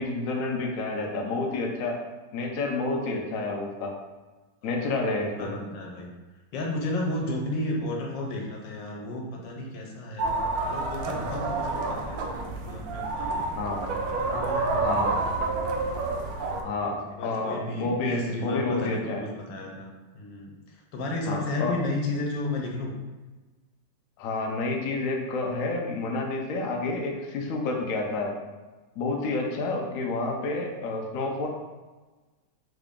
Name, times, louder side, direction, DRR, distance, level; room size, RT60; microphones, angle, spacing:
voice 1, 0.0-2.0 2.3-3.9 4.6-5.5 13.6-13.8 14.8-15.1 16.6-17.0 17.2-19.2 21.3-21.7 24.2-28.3 29.0-31.5, left 3 dB, 65° left, 1 dB, 0.8 m, -29 dB
voice 2, 5.4-6.1 6.5-10.3 10.7-13.5 14.2-15.3 16.9-20.5 20.9-22.9, left 1 dB, 85° left, 0 dB, 1.4 m, -33 dB
sound 1, 10.2-16.6, right 3 dB, 70° right, 0.9 m, -29 dB
3.7 x 2.5 x 3.5 m, 1.2 s
omnidirectional pair, 1.9 m